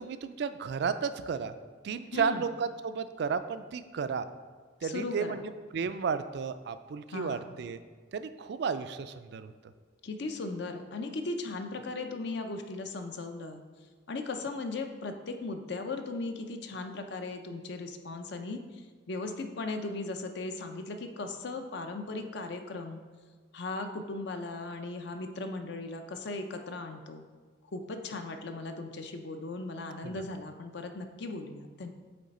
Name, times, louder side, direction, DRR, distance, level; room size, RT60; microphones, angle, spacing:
voice 1, 0.0-1.5 1.8-4.2 4.8-7.8 8.1-9.5 30.0-30.2, right 6 dB, 55° right, 11 dB, 0.3 m, -33 dB
voice 2, 2.1-2.5 4.8-5.4 7.1-7.6 10.0-13.6 14.1-23.0 23.5-27.2 27.7-31.9, left 3 dB, 60° left, 6 dB, 0.5 m, -37 dB
8.5 x 3.3 x 4.2 m, 1.5 s
head